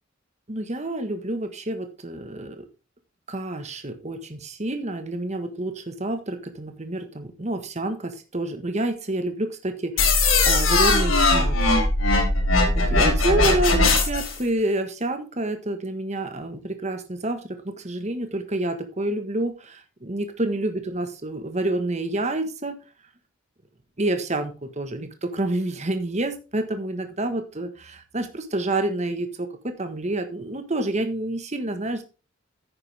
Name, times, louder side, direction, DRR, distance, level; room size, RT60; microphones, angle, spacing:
voice 1, 0.5-2.7 3.3-11.6 12.7-22.8 24.0-32.0, right 2 dB, 35° right, 7 dB, 1.4 m, -28 dB
sound 1, 10.0-14.4, left 2 dB, 90° left, 4.5 m, -19 dB
9.6 x 9.6 x 3.5 m, 0.31 s
head